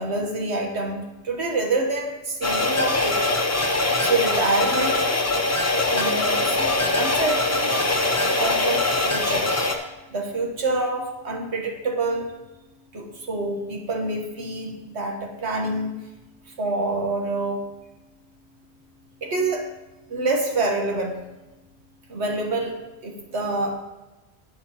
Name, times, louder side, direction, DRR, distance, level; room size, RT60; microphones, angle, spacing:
voice 1, 0.0-3.2 3.6-5.0 5.9-7.8 8.3-9.5 10.1-12.3 12.9-16.0 16.6-17.6 19.2-19.7 20.1-21.2 22.1-23.8, right 2 dB, 85° right, 1 dB, 1.6 m, -27 dB
sound 1, 2.4-9.8, left 2 dB, 15° left, 0.7 m, -22 dB
11.5 x 8.5 x 3.0 m, 1.1 s
omnidirectional pair, 1.1 m